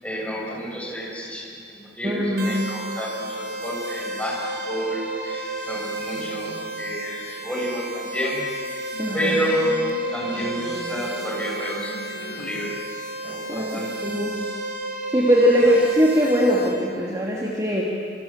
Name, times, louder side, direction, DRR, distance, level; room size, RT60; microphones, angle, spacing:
voice 1, 0.0-8.4 9.1-9.8 10.1-12.8 13.2-13.9, equal, 5° left, -4 dB, 7.4 m, -30 dB
voice 2, 2.0-2.7 9.0-9.3 13.5-14.4 15.1-17.8, equal, 20° right, -3 dB, 2.6 m, -21 dB
sound 1, 2.4-16.7, right 2 dB, 55° right, 5.4 m, -32 dB
sound 2, 6.1-6.8 8.9-12.7, left 1 dB, 85° left, 2.6 m, -39 dB
27.5 x 27.0 x 7.4 m, 2.4 s
head